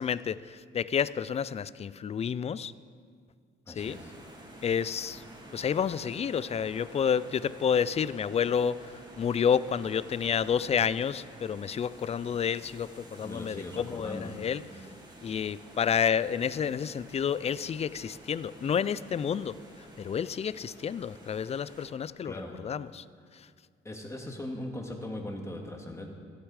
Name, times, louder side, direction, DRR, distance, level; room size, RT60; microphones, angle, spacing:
voice 1, 0.0-2.7 3.7-4.0 4.6-5.2 5.5-14.9 15.2-22.3 22.6-23.0 23.3-23.5, left 7 dB, 30° left, 18 dB, 0.4 m, -30 dB
voice 2, 3.7-4.1 13.2-14.4 22.2-22.6 23.8-26.1, left 1 dB, 15° left, 1 dB, 2.0 m, -39 dB
sound 1, 3.8-21.9, right 1 dB, 20° right, 2.5 m, -50 dB
13.5 x 11.5 x 4.9 m, 2.1 s
cardioid pair, 90°, 20 cm